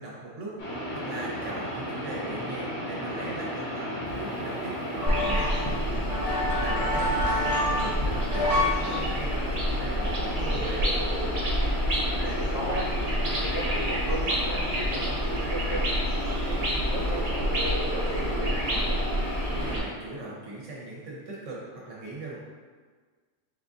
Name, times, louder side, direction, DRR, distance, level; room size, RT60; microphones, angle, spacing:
voice 1, 0.0-5.5 6.6-10.9 19.6-22.4, right 2 dB, 70° right, -5 dB, 1.4 m, -39 dB
sound 1, 0.6-19.8, equal, 45° left, 0.9 m, -34 dB
sound 2, 4.1-8.8 9.1-9.3 9.7-11.1 11.5-11.6 12.1-12.2 12.4-14.0 14.4-14.5 14.8-15.3 15.9-16.0 16.7-16.8 17.1-18.2 18.5-18.9 19.2-19.6, left 1 dB, 25° left, 0.6 m, -30 dB
sound 3, 5.1-19.8, equal, 35° right, 0.7 m, -29 dB
voice 2, 6.4-7.0 12.2-12.9 13.4-15.8 16.3-19.0, right 1 dB, 80° left, -7 dB, 1.5 m, -36 dB
4.0 x 3.5 x 2.6 m, 1.5 s
omnidirectional pair, 1.3 m